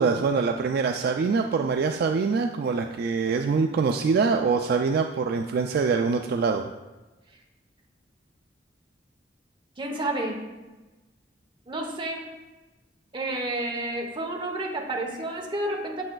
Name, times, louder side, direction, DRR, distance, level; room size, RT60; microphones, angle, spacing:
voice 1, 0.0-6.7, right 5 dB, 60° right, 5 dB, 0.3 m, -24 dB
voice 2, 9.8-10.4 11.7-12.3 13.1-16.0, right 1 dB, 30° right, 0 dB, 0.9 m, -30 dB
7.6 x 6.2 x 2.3 m, 1.1 s
head